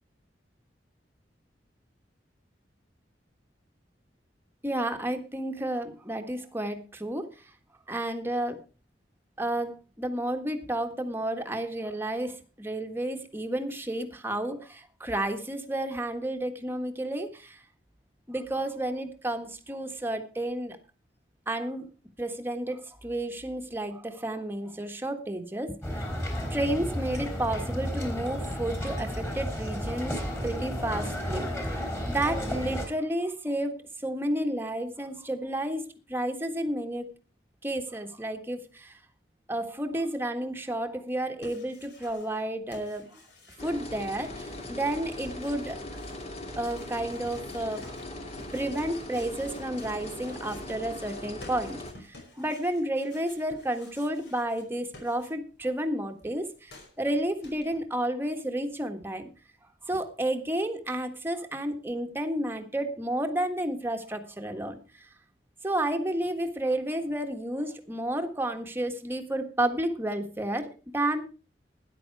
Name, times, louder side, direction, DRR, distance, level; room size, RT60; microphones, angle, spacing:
voice 1, 4.6-7.3 7.9-8.6 9.4-17.6 18.3-20.8 21.5-21.8 22.2-26.0 26.5-31.8 32.1-35.8 36.1-37.1 37.6-39.0 39.5-43.1 43.6-45.8 46.6-47.9 48.5-51.8 52.1-56.7 57.0-59.3 59.9-64.8 65.6-71.2, right 1 dB, 15° right, 5 dB, 1.5 m, -31 dB
sound 1, 25.8-32.9, equal, 15° left, 3.3 m, -32 dB
sound 2, 41.1-42.4 42.7-55.7 55.9-57.8, left 2 dB, 70° left, 5.3 m, -53 dB
sound 3, 43.6-51.9, left 1 dB, 35° left, 2.4 m, -40 dB
13.0 x 10.5 x 4.7 m, 0.34 s
head